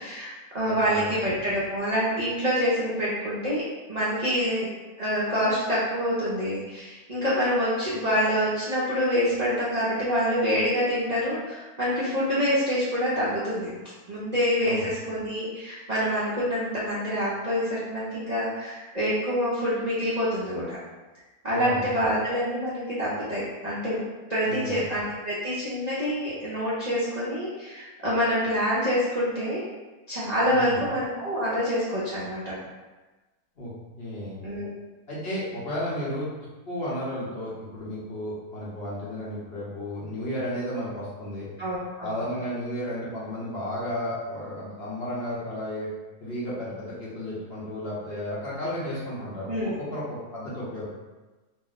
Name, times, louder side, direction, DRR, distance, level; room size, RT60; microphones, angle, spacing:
voice 1, 0.0-3.6 3.9-4.7 5.0-13.7 14.1-20.8 21.4-24.0 24.3-29.6 30.1-32.5 34.4-34.7 41.6-42.2 48.1-48.2 49.5-49.8, equal, 45° right, -10 dB, 0.5 m, -26 dB
voice 2, 0.6-1.1 14.6-14.8 21.5-21.8 24.4-24.8 30.5-30.8 33.6-33.7 34.0-34.4 35.1-36.3 36.7-41.5 42.0-45.9 46.2-49.5 49.8-50.8, equal, 45° left, -9 dB, 1.0 m, -33 dB
2.8 x 2.1 x 4.0 m, 1.2 s
omnidirectional pair, 1.6 m